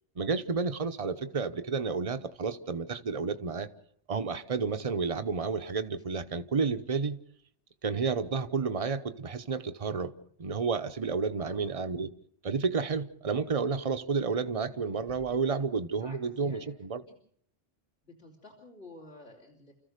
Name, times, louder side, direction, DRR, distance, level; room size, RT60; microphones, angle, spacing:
voice 1, 0.2-3.7 4.1-7.2 7.8-10.1 10.4-12.1 12.4-17.0, right 5 dB, 30° right, 1.0 m, -31 dB
voice 2, 11.4-11.7 15.9-16.7 17.1-17.2 18.0-19.7, left 2 dB, 70° left, 3.8 m, -52 dB
29.5 x 14.5 x 6.6 m
omnidirectional pair, 1.2 m